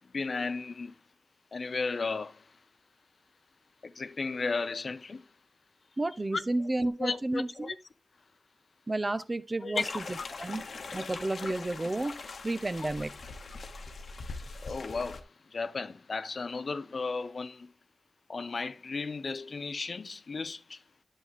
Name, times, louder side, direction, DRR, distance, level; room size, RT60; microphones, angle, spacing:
voice 1, 0.1-0.9 1.5-2.4 3.8-5.2 6.3-6.4 7.0-7.7 9.6-9.8 10.2-10.3 14.6-17.7 18.3-20.8, left 4 dB, 65° left, 0.7 m, -34 dB
voice 2, 6.0-7.8 8.9-10.7 10.9-12.1 12.4-13.1, right 2 dB, 30° right, 0.7 m, -32 dB
sound 1, 9.7-15.2, left 4 dB, 90° left, 1.1 m, -41 dB
11.0 x 7.2 x 3.0 m
wide cardioid pair, 105°, 0 cm